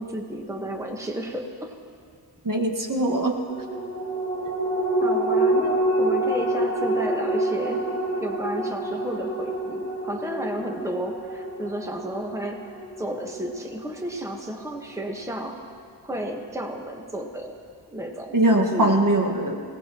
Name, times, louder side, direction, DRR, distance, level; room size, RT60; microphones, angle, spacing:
voice 1, 0.0-1.7 5.0-7.9 8.2-15.6 16.0-17.5 17.9-18.4 18.7-19.0, right 1 dB, 5° right, 2 dB, 1.3 m, -32 dB
voice 2, 2.4-3.4 18.3-19.6, right 1 dB, 50° right, 2 dB, 1.7 m, -21 dB
sound 1, 3.5-14.3 14.7-14.8, right 1 dB, 30° left, 2.2 m, -27 dB
25.0 x 18.0 x 3.0 m, 2.3 s
wide cardioid pair, 80°, 43 cm